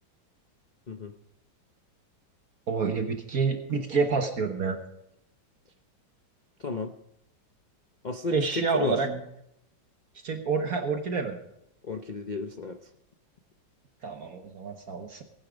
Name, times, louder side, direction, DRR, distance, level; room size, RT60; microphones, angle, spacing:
voice 1, 2.7-4.8 8.3-9.2 10.2-11.4 14.0-15.2, right 5 dB, 55° right, 5 dB, 1.5 m, -28 dB
voice 2, 6.6-6.9 8.0-9.0 11.8-12.8, left 3 dB, 65° left, 6 dB, 0.4 m, -32 dB
19.5 x 9.4 x 5.1 m, 0.80 s
omnidirectional pair, 2.0 m